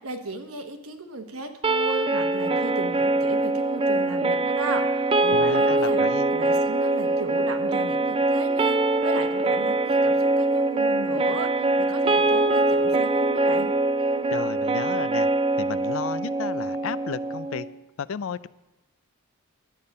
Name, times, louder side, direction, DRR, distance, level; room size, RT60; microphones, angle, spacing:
voice 1, 0.0-6.0 6.3-13.7, right 3 dB, 75° right, 5 dB, 1.2 m, -36 dB
sound 1, 1.6-17.7, right 2 dB, 25° right, 0.4 m, -23 dB
voice 2, 5.3-6.3 14.3-15.3 15.6-17.7 18.0-18.5, left 7 dB, 65° left, 17 dB, 0.4 m, -33 dB
11.5 x 8.6 x 5.3 m, 1.1 s
head